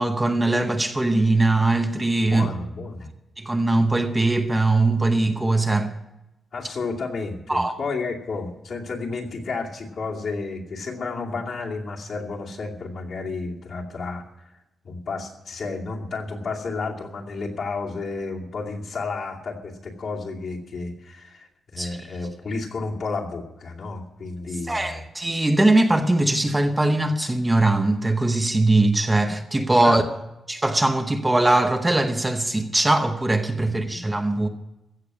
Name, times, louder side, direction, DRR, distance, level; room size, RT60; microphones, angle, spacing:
voice 1, 0.0-2.5 3.4-5.9 7.5-7.8 21.8-22.0 24.7-30.0 30.5-34.5, right 2 dB, 10° right, 0.8 m, -21 dB
voice 2, 2.2-3.1 6.5-14.5 14.8-25.1 29.8-30.0 33.6-34.0, left 3 dB, 55° left, 2.5 m, -32 dB
15.5 x 6.9 x 9.6 m
wide cardioid pair, 165°, 0 cm